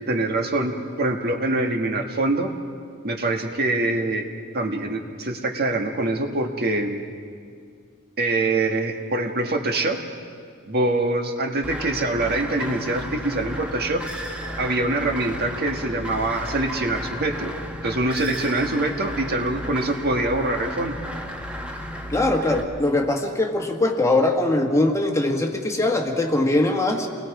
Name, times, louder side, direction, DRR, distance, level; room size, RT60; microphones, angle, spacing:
voice 1, 0.1-2.5 3.0-7.0 8.2-10.0 10.7-14.0 14.6-17.5 17.8-21.0, right 2 dB, 50° right, 3 dB, 1.7 m, -24 dB
sound 1, 11.6-22.6, equal, 5° right, 1.5 m, -34 dB
voice 2, 22.1-27.1, left 2 dB, 15° left, 2 dB, 1.5 m, -21 dB
29.0 x 21.0 x 4.9 m, 2.1 s
head